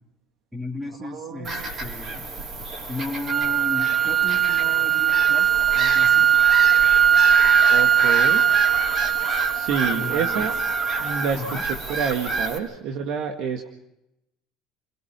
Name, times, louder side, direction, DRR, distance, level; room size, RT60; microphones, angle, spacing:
voice 1, 0.5-2.3 2.9-5.5 5.7-6.3 9.9-10.5 11.3-11.7, left 2 dB, 5° right, 3 dB, 3.4 m, -35 dB
voice 2, 1.1-1.7 7.7-8.4 9.5-10.5 11.0-11.6 11.9-13.7, right 7 dB, 65° right, 4 dB, 1.9 m, -28 dB
Bird vocalization bird call bird song / Gull seagull, 1.4-12.6, right 2 dB, 40° right, 5.6 m, -29 dB
sound 1, 3.3-11.3, right 9 dB, 20° right, 0.7 m, -20 dB
29.5 x 17.5 x 6.1 m, 0.87 s
cardioid pair, 130°, 0 cm